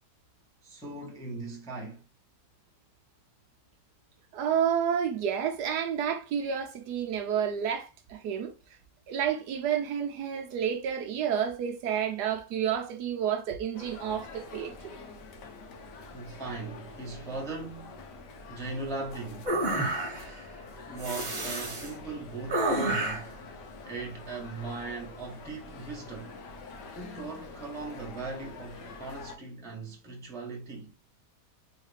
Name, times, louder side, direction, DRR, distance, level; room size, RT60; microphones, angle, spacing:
voice 1, 0.6-2.0 16.1-18.0 18.5-19.5 20.9-23.4 23.8-26.3 26.9-30.9, right 3 dB, 5° left, 0.5 m, -39 dB
voice 2, 4.3-8.5 9.1-15.0, right 8 dB, 70° right, 1.1 m, -30 dB
sound 1, 13.7-29.4, left 3 dB, 70° left, 1.4 m, -46 dB
sound 2, 19.5-20.4 21.0-21.9 22.5-23.3, right 1 dB, 30° right, 0.9 m, -30 dB
3.9 x 3.1 x 3.2 m
omnidirectional pair, 2.0 m